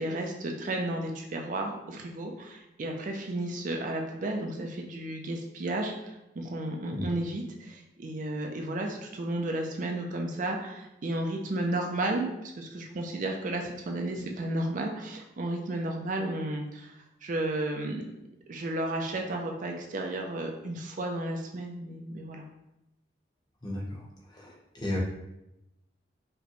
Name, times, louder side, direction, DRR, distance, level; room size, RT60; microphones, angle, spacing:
voice 1, 0.0-18.0 18.5-22.4, right 1 dB, 45° right, 2 dB, 0.4 m, -33 dB
voice 2, 23.6-25.0, left 1 dB, 25° left, -4 dB, 0.9 m, -35 dB
4.8 x 2.2 x 3.0 m, 0.91 s
head